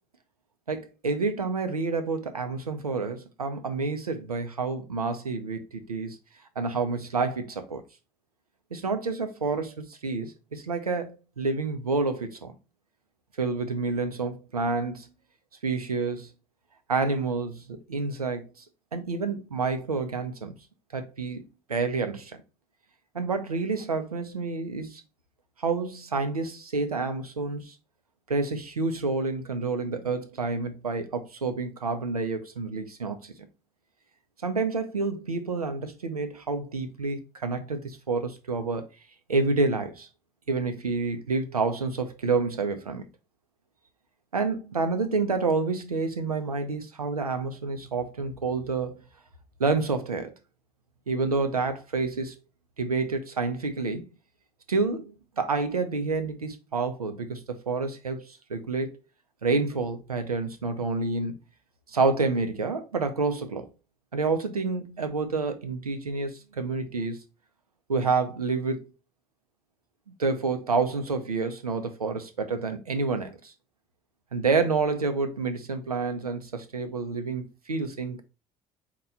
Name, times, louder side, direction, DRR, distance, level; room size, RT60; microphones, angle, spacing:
voice 1, 0.7-6.2 6.6-7.8 8.7-12.5 13.4-15.1 15.6-16.3 16.9-18.6 18.9-20.5 20.9-22.4 23.1-25.0 25.6-27.7 28.3-33.5 34.4-38.9 39.3-40.1 40.5-43.1 44.3-49.0 49.6-50.4 51.1-52.3 52.8-54.1 54.7-58.9 59.4-61.3 61.9-63.7 64.1-67.2 67.9-68.8 70.2-73.5 74.3-78.2, right 4 dB, 90° right, 0.5 m, -28 dB
4.3 x 2.2 x 4.1 m
figure-of-eight pair, 55°, 19 cm